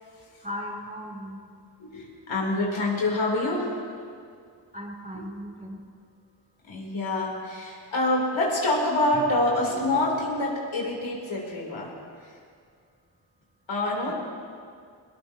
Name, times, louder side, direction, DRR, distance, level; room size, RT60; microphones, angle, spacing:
voice 1, 0.4-1.4 4.7-5.8 14.0-14.1, equal, 15° right, -1 dB, 3.3 m, -37 dB
voice 2, 1.8-3.8 5.1-5.2 6.6-11.9 12.2-12.3 13.7-14.1, left 2 dB, 80° left, -3 dB, 3.6 m, -26 dB
20.5 x 19.5 x 2.9 m, 2.2 s
cardioid pair, 70°, 46 cm